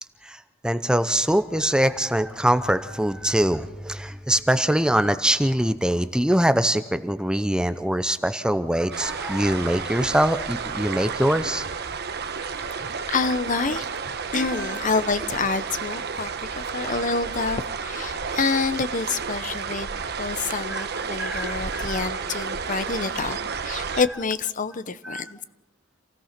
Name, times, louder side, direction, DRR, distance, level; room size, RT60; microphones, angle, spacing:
voice 1, 0.2-11.7 14.4-14.7 20.7-20.9 21.2-22.0 23.9-24.0 25.0-25.2, right 1 dB, 5° right, 11 dB, 0.6 m, -23 dB
sound 1, 8.9-24.0, right 5 dB, 55° right, 1.1 m, -31 dB
voice 2, 12.6-13.9 14.3-19.9 20.2-25.4, left 4 dB, 40° left, 14 dB, 0.8 m, -27 dB
27.5 x 16.5 x 5.9 m, 1.1 s
head